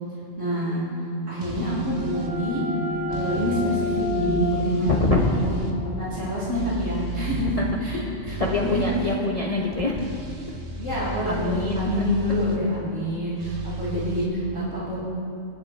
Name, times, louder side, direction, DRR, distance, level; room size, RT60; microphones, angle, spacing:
voice 1, 0.4-2.6 3.1-5.5 5.8-7.6 7.8-7.9 8.2-8.9 9.4-9.5 10.8-15.0, equal, 75° right, -10 dB, 3.9 m, -27 dB
sound 1, 1.4-7.0, left 3 dB, 5° right, 2.5 m, -31 dB
sound 2, 1.4-2.3 3.1-5.8 6.6-7.5 8.3-9.2 10.0-12.6 13.4-14.3, right 2 dB, 50° right, 1.5 m, -34 dB
voice 2, 4.6-5.3 7.6-7.7 8.3-10.2 11.3-11.9, left 2 dB, 30° left, -2 dB, 1.0 m, -25 dB
25.0 x 10.0 x 3.3 m, 2.5 s
omnidirectional pair, 1.3 m